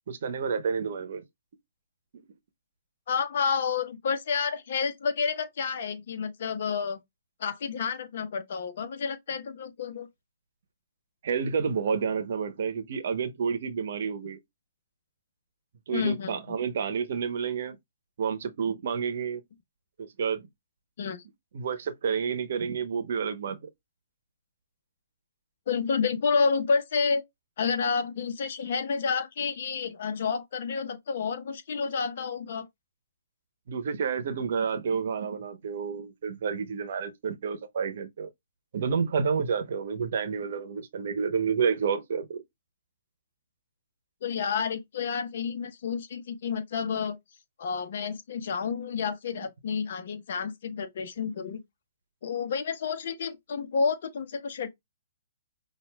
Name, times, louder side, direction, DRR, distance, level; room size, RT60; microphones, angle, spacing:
voice 1, 0.1-1.2 11.2-14.4 15.9-17.8 18.2-19.4 20.0-20.5 21.5-23.6 33.7-38.3 38.7-42.4, right 6 dB, 60° right, 0.8 m, -29 dB
voice 2, 3.1-7.0 7.4-10.1 15.9-16.4 21.0-21.2 25.7-27.2 27.6-32.7 44.2-47.2 47.6-51.6 52.2-54.7, left 5 dB, 60° left, 1.0 m, -30 dB
5.8 x 2.5 x 2.2 m
hypercardioid pair, 135°, 0 cm